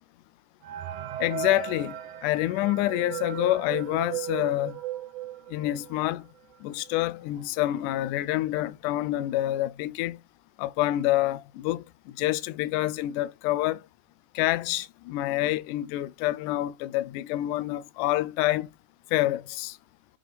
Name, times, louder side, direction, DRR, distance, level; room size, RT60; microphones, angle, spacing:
sound 1, 0.6-6.1 6.5-6.6 6.8-7.0 7.7-7.8 8.2-8.5, right 12 dB, 75° right, 1.5 m, -36 dB
voice 1, 1.2-2.0 2.2-4.7 5.5-6.2 6.6-10.2 10.6-11.8 12.2-13.8 14.4-18.7 19.1-19.8, left 15 dB, 80° left, 2.0 m, -27 dB
7.5 x 3.4 x 4.0 m
omnidirectional pair, 3.9 m